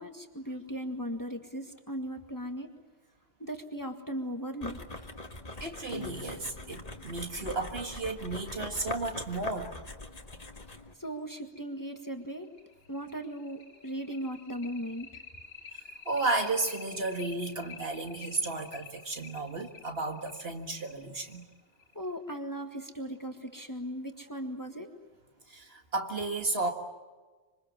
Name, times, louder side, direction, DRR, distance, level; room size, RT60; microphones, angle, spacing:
voice 1, 0.0-2.7 3.4-5.1 11.0-12.5 12.9-15.2 21.9-24.9, equal, 20° left, 4 dB, 1.9 m, -38 dB
sound 1, 4.6-10.9, left 2 dB, 40° left, 1.9 m, -43 dB
voice 2, 5.6-9.7 16.1-21.4 25.5-26.7, right 2 dB, 70° right, 4 dB, 2.1 m, -33 dB
sound 2, 5.9-9.1 10.5-10.6 11.0-11.1 11.6-11.7 12.1-22.1, left 5 dB, 65° left, 2.0 m, -49 dB
26.5 x 25.5 x 7.4 m, 1.3 s
omnidirectional pair, 1.1 m